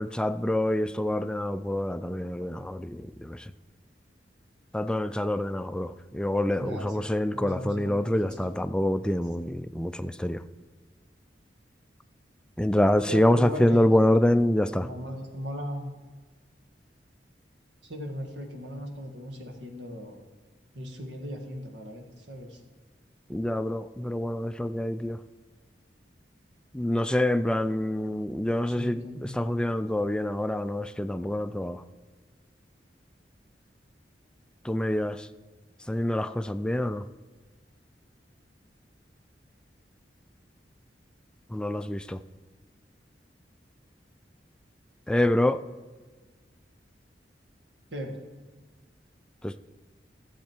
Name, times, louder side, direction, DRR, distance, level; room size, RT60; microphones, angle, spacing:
voice 1, 0.0-3.4 4.7-10.4 12.6-14.9 23.3-25.2 26.7-29.0 29.3-31.8 34.7-35.3 35.9-37.0 41.5-42.2 45.1-45.6 49.4-49.6, left 1 dB, 5° left, 11 dB, 0.3 m, -26 dB
voice 2, 6.6-8.6 13.1-15.9 17.8-20.2 20.7-22.6 28.7-29.3 47.9-48.2 48.5-48.6, equal, 85° right, 3 dB, 1.6 m, -38 dB
13.5 x 7.4 x 4.5 m, 1.3 s
head